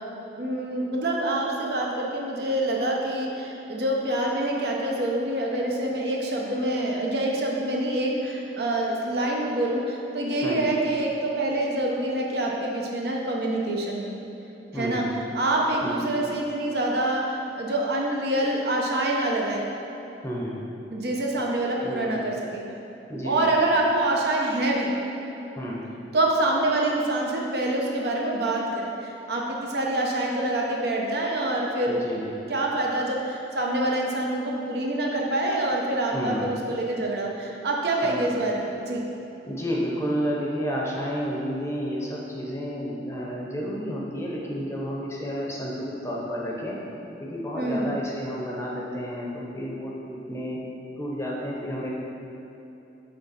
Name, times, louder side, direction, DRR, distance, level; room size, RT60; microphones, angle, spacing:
voice 1, 0.4-14.1 14.7-15.0 15.3-19.7 20.9-22.6 23.2-24.9 26.1-32.0 32.5-39.0 47.6-47.9, right 1 dB, 60° right, -1 dB, 0.8 m, -26 dB
voice 2, 10.4-10.7 14.7-15.1 15.8-16.1 20.2-20.5 21.8-22.2 23.1-23.5 25.6-25.8 31.9-32.3 36.1-36.5 38.0-38.4 39.4-46.8 47.2-50.6 51.0-51.9, equal, 15° left, -3 dB, 0.7 m, -31 dB
6.7 x 3.9 x 4.1 m, 3.0 s
head